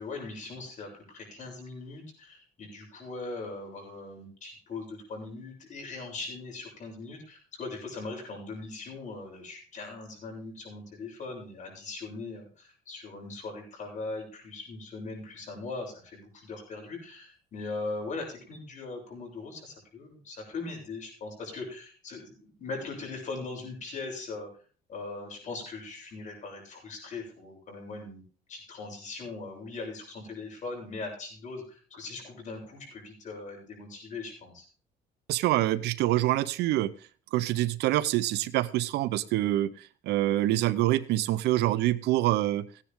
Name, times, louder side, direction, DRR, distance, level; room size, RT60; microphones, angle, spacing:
voice 1, 0.0-24.5 24.9-28.2 28.5-34.7, left 3 dB, 45° left, 0 dB, 7.5 m, -40 dB
voice 2, 35.3-36.9 37.3-39.7 40.0-42.6, right 15 dB, 85° right, 17 dB, 0.8 m, -26 dB
16.5 x 10.0 x 3.7 m, 0.39 s
cardioid pair, 110°, 17 cm